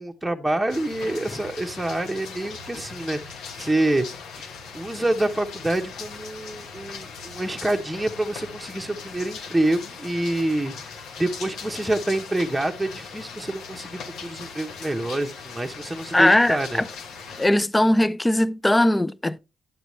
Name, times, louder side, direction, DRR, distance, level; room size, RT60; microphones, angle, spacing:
voice 1, 0.0-4.1 4.4-4.5 4.7-16.8, right 1 dB, 5° right, 0.9 m, -27 dB
sound 1, 0.7-17.5, left 5 dB, 80° left, 1.3 m, -39 dB
voice 2, 16.1-16.8 17.4-19.4, left 1 dB, 10° left, 0.5 m, -19 dB
9.0 x 8.0 x 3.1 m
cardioid pair, 90°, 0 cm